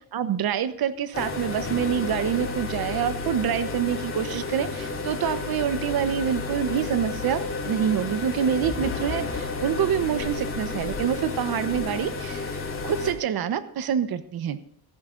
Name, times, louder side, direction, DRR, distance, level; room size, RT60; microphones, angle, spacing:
voice 1, 0.1-12.6 12.8-14.6, right 8 dB, 60° right, 12 dB, 1.1 m, -26 dB
sound 1, 1.1-13.1, left 3 dB, 30° left, 3.5 m, -31 dB
16.5 x 14.5 x 2.6 m, 0.72 s
cardioid pair, 135°, 41 cm